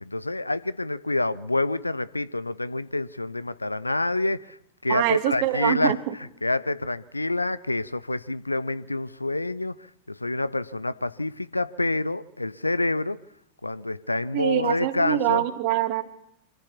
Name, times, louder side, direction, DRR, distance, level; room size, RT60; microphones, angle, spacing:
voice 1, 0.0-4.6 4.8-5.9 6.4-9.8 10.1-13.2 13.6-15.4, left 2 dB, 85° left, 0.7 m, -27 dB
voice 2, 4.9-6.1 14.3-16.0, right 14 dB, 45° right, 2.1 m, -24 dB
25.5 x 14.5 x 7.2 m
figure-of-eight pair, 90°, 0 cm